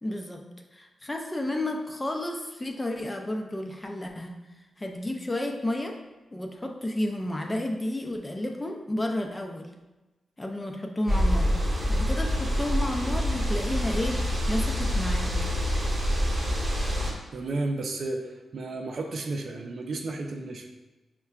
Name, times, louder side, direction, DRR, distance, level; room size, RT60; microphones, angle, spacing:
voice 1, 0.0-0.4 0.7-4.4 4.8-6.0 6.3-9.7 10.4-11.5 11.9-15.3, left 1 dB, 25° left, 3 dB, 0.5 m, -31 dB
sound 1, 11.1-17.1, equal, 50° right, 1.0 m, -26 dB
voice 2, 17.3-20.7, right 2 dB, 70° right, 3 dB, 0.4 m, -32 dB
5.4 x 2.2 x 2.3 m, 1.1 s
supercardioid pair, 45°, 0 cm